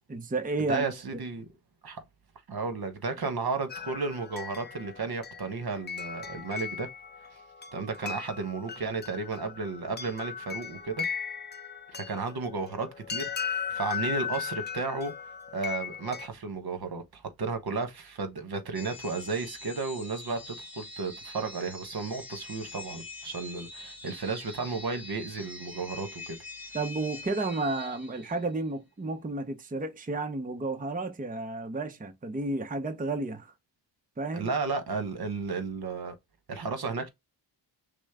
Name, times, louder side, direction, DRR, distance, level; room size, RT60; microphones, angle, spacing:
voice 1, 0.1-0.9 26.7-33.5 34.2-34.5, right 2 dB, 20° right, 0.7 m, -32 dB
voice 2, 0.7-1.5 1.8-2.0 2.5-6.9 7.7-11.0 11.9-15.1 15.5-26.4 34.3-36.1 36.5-37.1, right 4 dB, 60° right, 1.2 m, -33 dB
sound 1, 3.7-16.3, left 7 dB, 25° left, 0.5 m, -37 dB
sound 2, 18.7-28.6, left 2 dB, 5° right, 1.4 m, -44 dB
6.1 x 2.1 x 3.5 m
cardioid pair, 85°, 43 cm